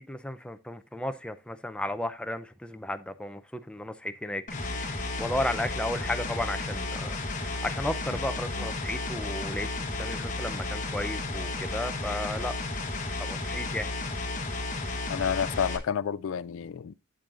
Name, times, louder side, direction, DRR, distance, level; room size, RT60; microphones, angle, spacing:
voice 1, 0.0-4.4 4.7-12.5 13.2-13.9, left 1 dB, 5° left, 0.5 m, -34 dB
sound 1, 4.5-15.8, left 2 dB, 40° left, 1.1 m, -33 dB
voice 2, 15.1-16.9, left 7 dB, 70° left, 0.4 m, -30 dB
8.5 x 7.7 x 2.5 m
head